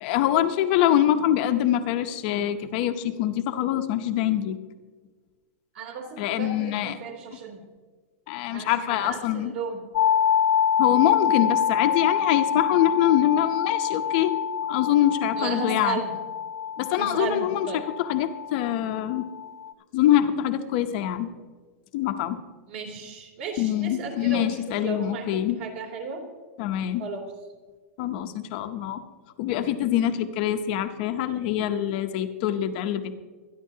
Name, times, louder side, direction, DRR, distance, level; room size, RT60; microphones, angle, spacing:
voice 1, 0.0-4.6 6.2-7.0 8.3-9.5 10.8-14.4 14.7-16.0 16.8-19.3 19.9-21.3 21.9-22.4 23.6-25.6 26.6-27.1 28.0-29.0 29.4-33.1, left 11 dB, 35° left, 7 dB, 0.7 m, -24 dB
voice 2, 5.7-7.6 8.5-9.8 15.4-16.1 17.0-17.8 22.7-24.5 24.8-26.2 27.0-27.2, right 5 dB, 50° right, 3 dB, 3.0 m, -34 dB
sound 1, 9.9-19.7, left 8 dB, 80° left, 0.9 m, -26 dB
24.5 x 10.5 x 2.8 m, 1.4 s
supercardioid pair, 170°, 8 cm